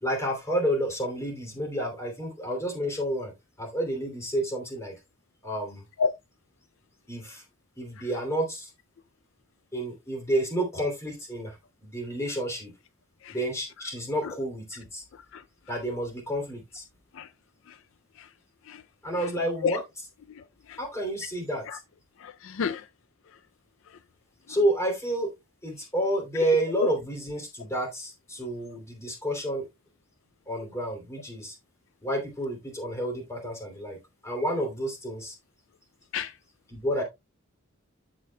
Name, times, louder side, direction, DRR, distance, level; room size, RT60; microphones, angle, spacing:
voice 1, 0.0-3.3 3.6-4.9 5.4-5.8 7.1-7.4 7.8-8.7 9.7-11.5 11.8-12.7 13.3-15.0 15.7-16.8 19.0-19.8 20.8-21.8 24.5-25.3 25.6-29.7 30.5-31.5 32.0-34.0 34.2-35.3 36.7-37.0, right 1 dB, 15° left, 2.8 m, -30 dB
voice 2, 22.2-22.8 26.8-26.9 36.1-36.3, left 6 dB, 65° left, 0.4 m, -29 dB
13.5 x 5.1 x 2.2 m
head